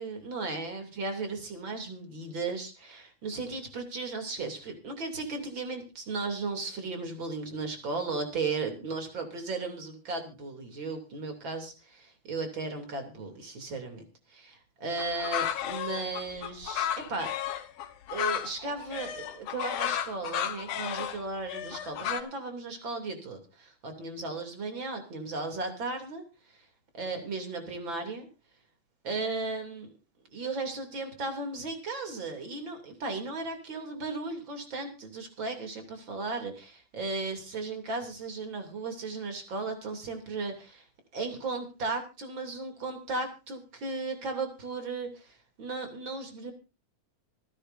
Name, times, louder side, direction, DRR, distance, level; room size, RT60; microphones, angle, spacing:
voice 1, 0.0-14.0 14.3-17.3 18.1-26.2 26.5-26.6 26.9-28.3 29.0-29.9 30.3-40.8 41.1-46.5, right 3 dB, 40° right, 5 dB, 3.5 m, -35 dB
sound 1, 15.0-22.2, left 10 dB, 90° left, 2.7 m, -33 dB
26.5 x 10.0 x 2.7 m, 0.30 s
omnidirectional pair, 3.4 m